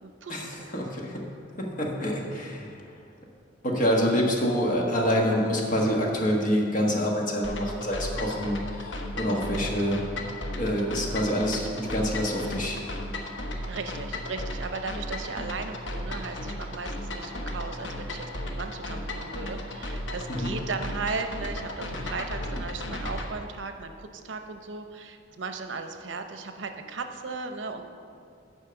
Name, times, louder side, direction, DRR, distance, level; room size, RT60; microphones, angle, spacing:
voice 1, 0.0-0.7 13.7-27.8, right 4 dB, 85° right, 7 dB, 0.7 m, -36 dB
voice 2, 0.7-1.2 1.6-2.8 3.6-10.0 10.5-12.8 20.3-20.5, equal, 45° left, -1 dB, 1.4 m, -26 dB
sound 1, 7.4-23.3, left 1 dB, 80° left, 1.0 m, -35 dB
8.5 x 5.5 x 6.9 m, 2.4 s
head